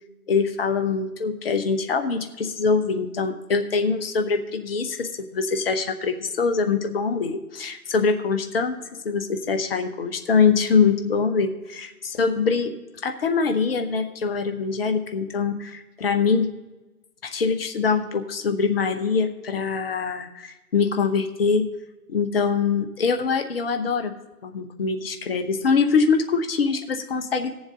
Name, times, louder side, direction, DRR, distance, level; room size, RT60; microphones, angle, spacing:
voice 1, 0.3-8.8 9.0-12.7 13.0-16.5 17.2-21.7 22.1-24.1 24.4-27.5, left 5 dB, 40° left, 8 dB, 0.9 m, -23 dB
17.5 x 7.2 x 3.7 m, 1.1 s
figure-of-eight pair, 130°, 45 cm